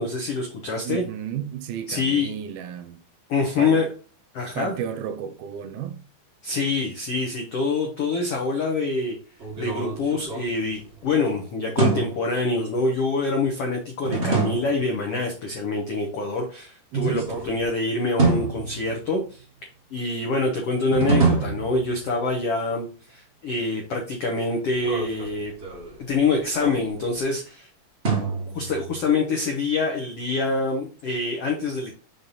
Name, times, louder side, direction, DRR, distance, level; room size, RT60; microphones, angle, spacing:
voice 1, 0.0-1.0 1.9-2.3 3.3-3.9 4.3-4.7 6.4-9.2 9.6-19.4 19.9-25.5 26.1-27.7 28.5-31.9, left 3 dB, 85° left, 1.3 m, -25 dB
voice 2, 0.8-3.0 3.6-3.8 4.5-6.0 16.9-17.3, right 9 dB, 80° right, 2.6 m, -32 dB
sound 1, 9.4-11.1 11.8-12.4 14.0-14.9 16.9-17.7 18.2-19.3 20.9-22.3 24.7-27.2 28.0-29.0, right 4 dB, 30° right, 1.1 m, -26 dB
5.8 x 5.3 x 4.1 m
omnidirectional pair, 4.4 m